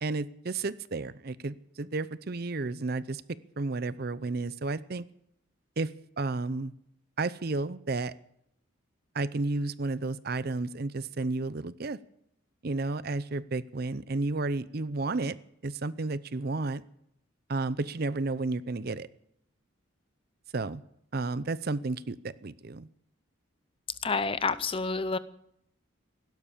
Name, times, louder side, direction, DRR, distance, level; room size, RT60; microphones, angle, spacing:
voice 1, 0.0-3.2 3.6-5.0 5.8-5.9 6.2-6.7 7.2-8.1 9.1-12.0 12.6-15.4 15.6-16.8 17.5-19.1 20.5-20.8 21.1-22.9, right 3 dB, 50° right, 17 dB, 0.6 m, -32 dB
voice 2, 24.0-25.2, left 4 dB, 25° left, 15 dB, 0.6 m, -28 dB
17.0 x 12.0 x 6.9 m, 0.75 s
head